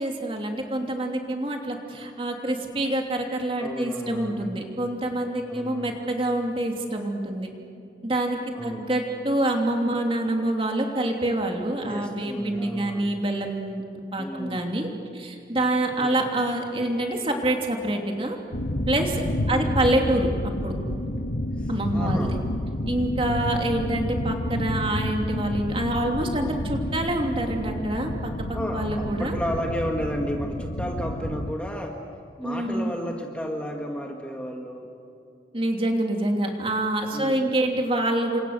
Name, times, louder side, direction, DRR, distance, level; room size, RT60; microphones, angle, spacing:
voice 1, 0.0-7.5 8.0-13.8 14.1-14.9 15.1-18.4 18.9-19.2 19.5-20.3 20.6-20.7 21.7-22.4 22.9-28.3 28.7-29.4 32.4-32.9 35.5-38.4, right 1 dB, 30° right, 2 dB, 2.9 m, -26 dB
voice 2, 3.6-4.6 5.5-6.0 8.5-8.9 11.9-13.1 14.2-14.7 16.0-16.3 19.5-19.8 21.6-22.5 23.3-23.6 28.5-32.0 32.4-34.9 37.1-37.5, equal, 5° left, 1 dB, 1.7 m, -33 dB
sound 1, 18.5-31.5, left 1 dB, 85° left, 1.4 m, -29 dB
29.0 x 25.5 x 6.7 m, 2.6 s
head